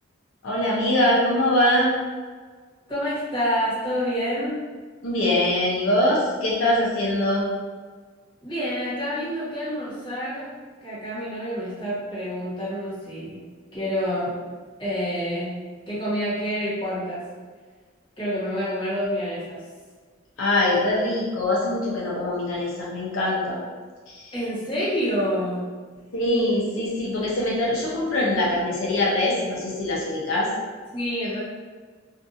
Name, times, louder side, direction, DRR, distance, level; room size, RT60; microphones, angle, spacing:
voice 1, 0.4-1.9 5.0-7.5 20.4-23.6 24.1-24.2 26.1-30.5, left 1 dB, 90° left, -5 dB, 0.6 m, -23 dB
voice 2, 2.9-4.6 8.4-13.4 13.7-14.4 14.8-15.5 15.9-17.2 18.2-19.6 24.3-25.7 30.9-31.4, equal, 25° left, -12 dB, 1.2 m, -28 dB
2.6 x 2.3 x 2.6 m, 1.5 s
head